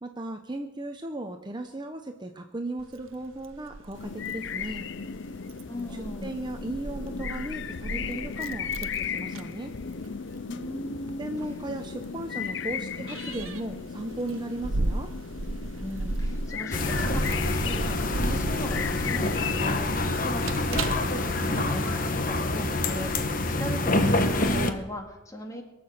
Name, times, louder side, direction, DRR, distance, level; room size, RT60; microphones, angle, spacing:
voice 1, 0.0-4.8 6.2-9.7 11.2-15.1, right 2 dB, 20° right, 5 dB, 0.7 m, -36 dB
Keys jangling, 2.8-21.8, right 2 dB, 85° right, 0.8 m, -36 dB
sound 1, 3.9-19.8, left 6 dB, 65° left, 0.5 m, -36 dB
voice 2, 5.7-6.4 10.5-11.3 12.7-13.0 15.8-25.6, equal, 15° left, 2 dB, 2.2 m, -38 dB
sound 2, 16.7-24.7, left 2 dB, 45° left, 1.1 m, -26 dB
22.5 x 7.7 x 6.6 m, 1.0 s
head